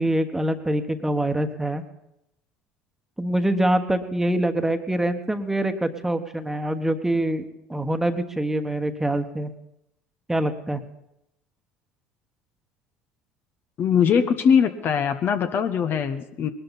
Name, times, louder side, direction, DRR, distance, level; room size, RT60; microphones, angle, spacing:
voice 1, 0.0-1.8 3.2-9.5 10.3-10.8, right 1 dB, 10° right, 7 dB, 1.3 m, -25 dB
voice 2, 13.8-16.5, left 7 dB, 50° left, 8 dB, 1.0 m, -21 dB
20.0 x 12.5 x 4.1 m, 0.83 s
hypercardioid pair, 75°, 5 cm